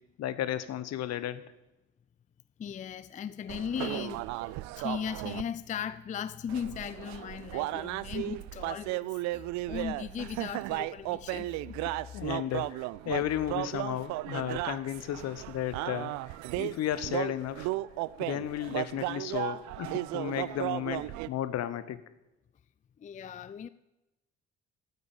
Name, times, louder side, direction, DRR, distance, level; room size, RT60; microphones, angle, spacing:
voice 1, 0.2-1.4 12.1-16.1 16.6-17.7 18.2-22.0, left 11 dB, 55° left, 0.8 m, -34 dB
voice 2, 2.6-4.4 4.8-11.8 23.0-23.7, left 8 dB, 25° left, 0.4 m, -37 dB
sound 1, 3.5-5.4 6.5-21.3, right 18 dB, 60° right, 0.5 m, -35 dB
8.9 x 8.1 x 8.6 m
figure-of-eight pair, 45°, 32 cm